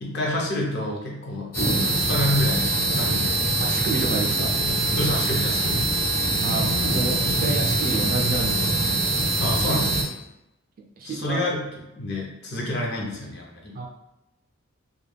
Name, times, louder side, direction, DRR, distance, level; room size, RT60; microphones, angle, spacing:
voice 1, 0.0-1.5 1.8-3.4 5.0-6.0 9.4-10.1 11.0-13.8, left 1 dB, 50° left, -2 dB, 0.6 m, -28 dB
sound 1, 1.5-10.0, right 2 dB, 80° left, 1.1 m, -23 dB
voice 2, 3.6-4.6 6.4-8.8 11.0-11.4 13.7-13.9, right 3 dB, 40° right, 1 dB, 0.3 m, -29 dB
2.3 x 2.2 x 3.2 m, 0.88 s
head